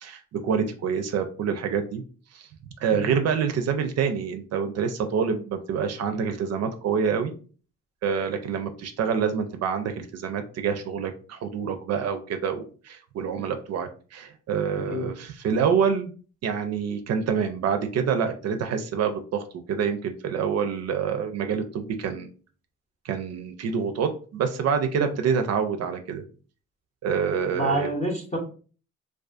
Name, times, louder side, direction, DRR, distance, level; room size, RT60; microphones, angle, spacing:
voice 1, 0.0-2.0 2.3-2.5 2.8-7.3 8.0-16.1 16.4-22.3 23.0-26.2 27.0-27.9, right 6 dB, 60° right, 7 dB, 0.4 m, -27 dB
voice 2, 27.5-28.4, right 1 dB, 25° left, -1 dB, 0.7 m, -28 dB
2.4 x 2.3 x 2.4 m, 0.39 s
cardioid pair, 90°, 30 cm